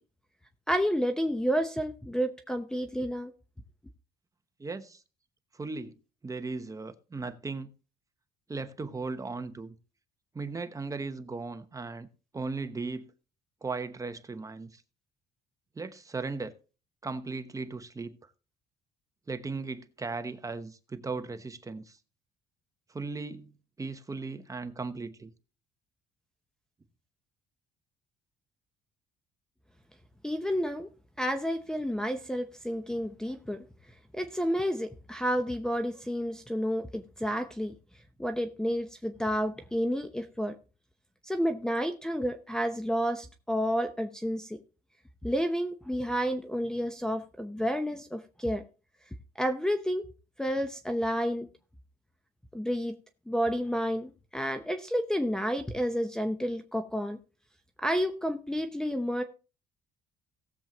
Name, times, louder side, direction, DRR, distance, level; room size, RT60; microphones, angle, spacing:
voice 1, 0.7-3.3 30.2-30.9 31.2-33.6 34.1-37.7 38.2-40.5 41.2-44.6 45.2-48.6 49.4-50.0 50.4-51.5 52.5-53.0 53.3-57.2 57.8-59.2, equal, 5° left, 0.8 m, -30 dB
voice 2, 4.6-5.0 5.5-6.0 6.2-7.7 8.5-9.7 10.3-12.1 12.3-13.1 13.6-14.8 15.7-16.5 17.0-18.2 19.3-22.0 22.9-25.3, right 3 dB, 20° right, 1.0 m, -37 dB
18.0 x 7.3 x 3.0 m
cardioid pair, 110°, 17 cm